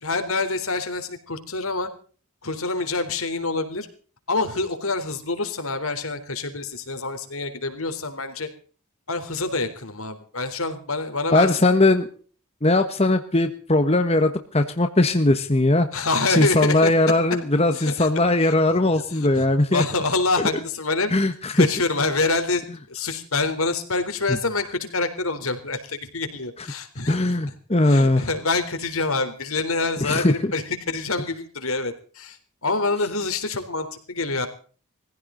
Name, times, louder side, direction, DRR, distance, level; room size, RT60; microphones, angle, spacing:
voice 1, 0.0-1.9 2.4-3.9 4.3-8.5 9.1-11.7 15.9-17.1 17.7-18.1 18.4-18.5 18.9-21.1 21.5-27.2 27.9-34.5, left 3 dB, 75° left, 8 dB, 3.7 m, -26 dB
voice 2, 11.3-12.1 12.6-19.8 21.1-21.7 24.3-24.4 27.1-28.2 30.0-30.5, left 2 dB, 30° left, 7 dB, 1.3 m, -20 dB
22.0 x 16.0 x 4.0 m, 0.41 s
head